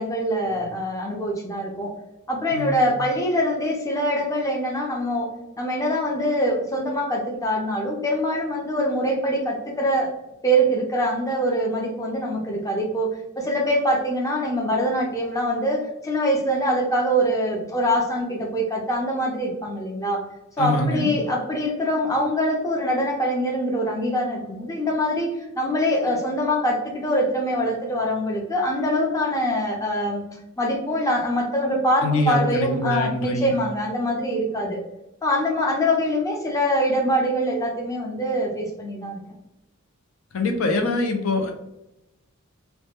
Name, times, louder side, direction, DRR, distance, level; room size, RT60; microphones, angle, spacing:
voice 1, 0.0-2.0 2.3-5.3 5.6-10.1 10.4-13.1 13.4-20.2 20.6-25.3 25.6-30.3 30.6-34.8 35.2-39.2, equal, 15° left, 0 dB, 0.4 m, -24 dB
voice 2, 2.5-3.0 20.6-21.1 32.0-33.5 40.3-41.5, left 2 dB, 75° left, 4 dB, 0.5 m, -24 dB
2.2 x 2.1 x 2.8 m, 0.91 s
head